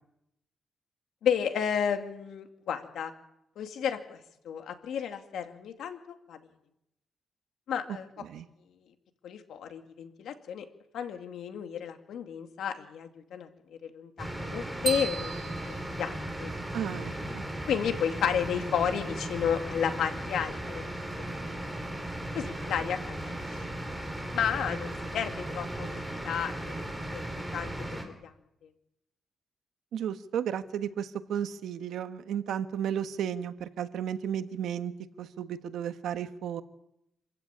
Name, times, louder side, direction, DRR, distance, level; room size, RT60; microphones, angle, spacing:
voice 1, 1.2-3.1 3.6-4.2 4.4-6.0 6.3-6.4 7.7-8.1 9.2-10.6 10.9-13.5 13.8-16.5 17.7-20.9 21.6-21.7 22.3-23.6 24.3-26.7 27.0-27.2 27.5-27.7 28.2-28.3, left 8 dB, 80° left, 6 dB, 2.4 m, -32 dB
sound 1, 14.2-28.0, right 1 dB, 5° right, 3.8 m, -36 dB
sound 2, 14.9-16.8, right 6 dB, 45° right, 2.9 m, -36 dB
voice 2, 16.7-17.4 29.9-34.9 35.2-36.6, right 9 dB, 90° right, 10 dB, 1.3 m, -33 dB
26.5 x 15.5 x 8.8 m, 0.84 s
cardioid pair, 130°, 0 cm